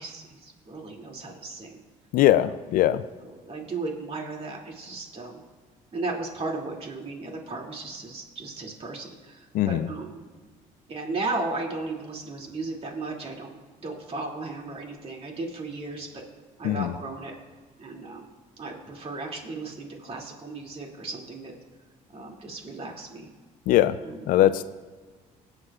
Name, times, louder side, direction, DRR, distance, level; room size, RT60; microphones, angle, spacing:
voice 1, 0.0-1.8 3.2-5.4 5.9-10.2 10.9-13.5 13.8-16.2 16.6-17.3 17.8-18.3 18.6-21.5 22.1-23.3 24.0-24.5, right 3 dB, 40° right, 0 dB, 2.5 m, -35 dB
voice 2, 2.1-3.0 9.5-9.9 16.6-16.9 23.7-24.0 24.3-24.7, left 13 dB, 70° left, 15 dB, 0.4 m, -21 dB
21.5 x 7.9 x 2.4 m, 1.4 s
supercardioid pair, 90°, 15 cm